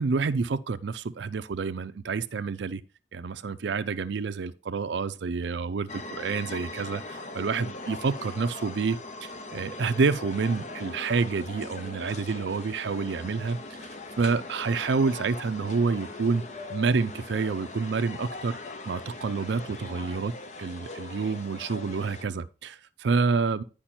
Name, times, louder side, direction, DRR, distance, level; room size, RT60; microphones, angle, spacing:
voice 1, 0.0-2.8 3.1-13.9 14.2-16.4 16.7-18.6 18.9-20.3 20.6-23.6, right 4 dB, 75° right, 0.4 m, -28 dB
sound 1, 5.9-22.3, left 2 dB, 40° left, 0.7 m, -40 dB
10.0 x 5.1 x 4.3 m
head